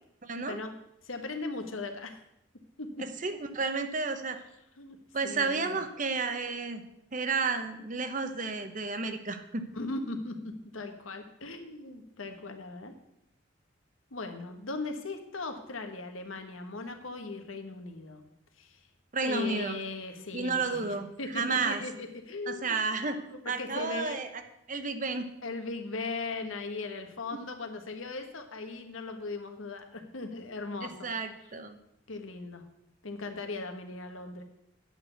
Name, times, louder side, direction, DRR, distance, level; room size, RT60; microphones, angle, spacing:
voice 1, 0.2-0.6 3.0-4.4 5.1-6.8 7.1-9.6 19.1-19.8 20.3-21.8 22.5-23.2 23.5-24.3 24.7-25.3 27.3-27.4 30.8-31.8, right 4 dB, 40° right, 8 dB, 0.9 m, -32 dB
voice 2, 1.0-2.2 2.8-2.9 4.8-5.0 5.2-5.8 9.7-12.9 14.1-18.3 18.6-18.8 19.2-22.8 23.3-24.2 25.4-31.1 32.1-32.6 33.0-34.4, left 3 dB, 90° left, 6 dB, 1.4 m, -38 dB
8.9 x 6.2 x 8.0 m, 0.80 s
head